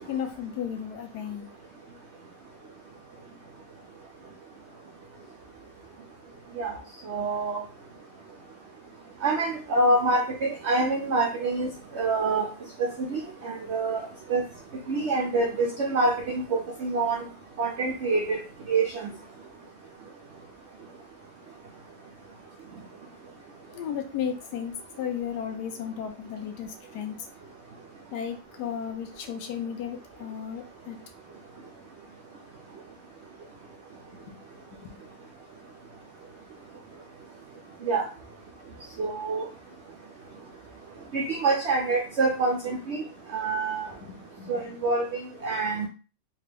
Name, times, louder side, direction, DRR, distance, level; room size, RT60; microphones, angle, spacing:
voice 1, 0.0-1.5 23.7-27.3 28.1-31.0 34.3-34.4 34.7-35.1 44.1-44.8, left 8 dB, 75° left, 6 dB, 1.1 m, -34 dB
voice 2, 7.1-7.6 9.2-11.7 12.0-12.5 12.8-14.0 14.3-14.4 14.9-17.2 17.6-18.4 18.7-19.1 37.9-38.0 39.0-39.5 41.1-43.0 43.3-43.9 44.5-45.1 45.4-45.9, right 3 dB, 80° right, 1 dB, 0.6 m, -26 dB
3.5 x 2.3 x 3.3 m, 0.35 s
omnidirectional pair, 1.8 m